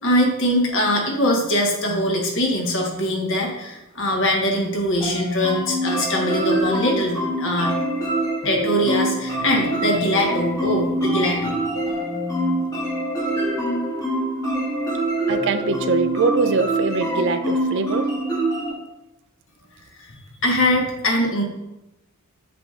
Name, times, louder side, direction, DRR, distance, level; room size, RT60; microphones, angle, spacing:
voice 1, 0.0-7.9 8.4-11.5 20.4-21.4, left 1 dB, 60° left, 0 dB, 1.3 m, -22 dB
sound 1, 5.0-18.7, right 1 dB, 15° left, 1.1 m, -25 dB
voice 2, 15.3-18.1, right 4 dB, 55° right, 10 dB, 0.4 m, -23 dB
7.8 x 4.9 x 2.5 m, 0.96 s
head